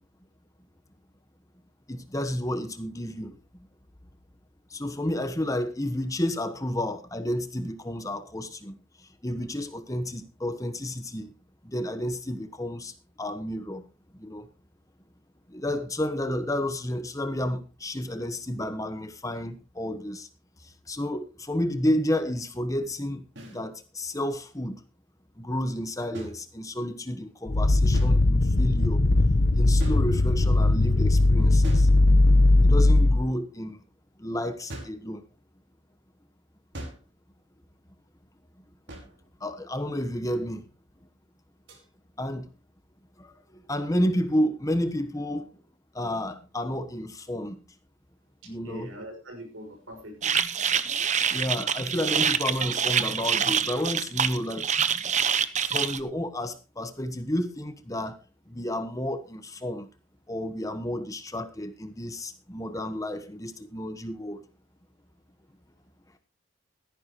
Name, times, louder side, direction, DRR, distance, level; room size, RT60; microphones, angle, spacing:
voice 1, 1.9-3.4 4.7-11.3 11.6-13.8 14.1-14.5 15.5-20.3 20.6-24.8 25.4-29.0 29.5-31.9 32.6-33.8 34.2-35.2 39.4-40.6 42.2-42.5 43.2-45.5 45.9-47.6 48.4-48.9 51.3-54.7 55.6-58.2 58.5-59.9 60.3-64.4, left 1 dB, 15° left, 1.2 m, -31 dB
sound 1, 23.4-23.6 26.1-27.0 27.9-28.5 29.8-30.6 31.6-32.5 34.7-35.1 36.7-37.3 38.9-39.3 41.7-41.9, right 1 dB, 60° right, 5.4 m, -42 dB
sound 2, 27.5-33.2, left 2 dB, 55° left, 0.9 m, -19 dB
voice 2, 48.6-50.3, equal, 85° right, 5.9 m, -42 dB
sound 3, 50.2-56.0, right 7 dB, 35° right, 1.0 m, -26 dB
16.5 x 14.0 x 3.0 m
head